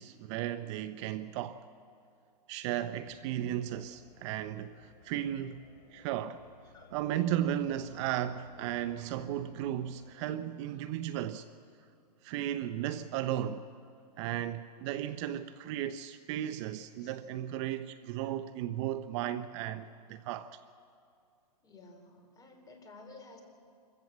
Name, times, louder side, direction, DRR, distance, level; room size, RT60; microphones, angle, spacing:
voice 1, 0.0-1.6 2.5-5.6 5.9-6.4 6.9-11.5 12.2-13.7 14.2-20.5, right 11 dB, 45° right, 0.7 m, -35 dB
sound 1, 3.0-10.1, left 5 dB, 80° left, 5.2 m, -58 dB
voice 2, 21.6-23.4, left 3 dB, 15° left, 3.5 m, -53 dB
25.5 x 15.0 x 7.4 m
hypercardioid pair, 125°, 21 cm